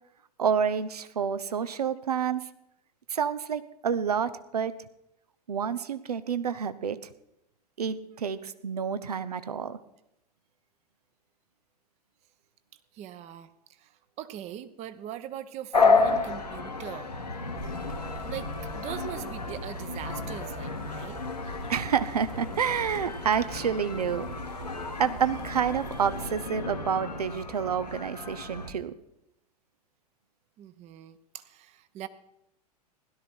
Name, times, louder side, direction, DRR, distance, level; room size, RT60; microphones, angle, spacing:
voice 1, 0.4-2.4 3.1-4.7 5.5-7.0 7.8-9.8 21.7-24.3 25.0-28.9, right 7 dB, 75° right, 14 dB, 0.9 m, -29 dB
voice 2, 12.9-13.5 13.8-13.9 14.2-17.1 18.2-21.2 30.6-32.1, right 11 dB, 35° right, 13 dB, 1.0 m, -41 dB
sound 1, 15.7-28.7, left 4 dB, 85° left, 1.7 m, -31 dB
sound 2, 17.6-26.3, right 2 dB, 55° right, 4.1 m, -46 dB
16.5 x 12.5 x 4.5 m, 0.84 s
figure-of-eight pair, 95°, 20 cm